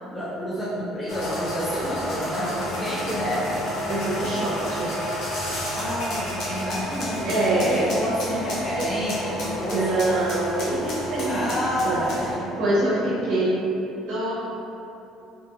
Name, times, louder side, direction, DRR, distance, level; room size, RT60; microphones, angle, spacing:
voice 1, 0.0-3.5 5.7-10.0 11.2-13.2, equal, 15° left, -10 dB, 0.6 m, -29 dB
sound 1, 1.1-12.3, equal, 70° left, 0.7 m, -31 dB
voice 2, 3.9-4.9 5.3-5.5 7.2-7.9 9.5-11.6 11.8-12.0 12.6-13.6 14.1-14.3, right 2 dB, 70° right, -8 dB, 0.6 m, -25 dB
2.8 x 2.7 x 2.3 m, 2.8 s
supercardioid pair, 85°, 0 cm